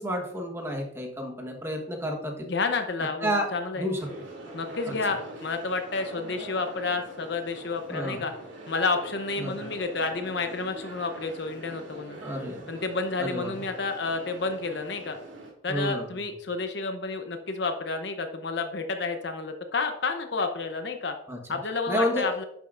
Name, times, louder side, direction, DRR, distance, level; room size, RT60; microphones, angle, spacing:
voice 1, 0.0-2.5 3.2-4.0 4.9-5.0 7.9-8.3 9.4-9.6 12.2-12.7 13.2-13.6 15.7-16.2 21.3-21.6 21.9-22.3, equal, 15° right, 2 dB, 1.3 m, -30 dB
voice 2, 2.4-3.9 4.5-8.3 8.7-12.2 12.7-15.2 15.6-21.1 21.5-22.4, left 3 dB, 60° left, 6 dB, 0.8 m, -30 dB
sound 1, 4.0-15.5, right 1 dB, 80° right, 2.9 m, -43 dB
11.0 x 7.4 x 2.6 m, 0.76 s
head